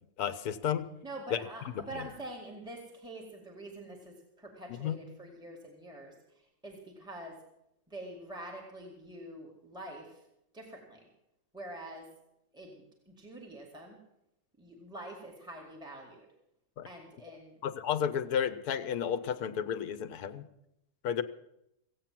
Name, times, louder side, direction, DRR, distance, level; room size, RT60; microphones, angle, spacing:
voice 1, 0.2-0.9 1.3-1.4 1.7-1.8 4.8-5.0 16.8-16.9 17.6-20.5 21.0-21.2, left 8 dB, 75° left, 11 dB, 1.3 m, -32 dB
voice 2, 1.0-7.4 7.9-10.2 10.5-11.0 11.5-12.1 12.5-14.0 14.6-16.3 16.8-17.6, right 1 dB, 5° right, -1 dB, 2.0 m, -46 dB
16.0 x 8.7 x 7.5 m, 0.86 s
omnidirectional pair, 1.7 m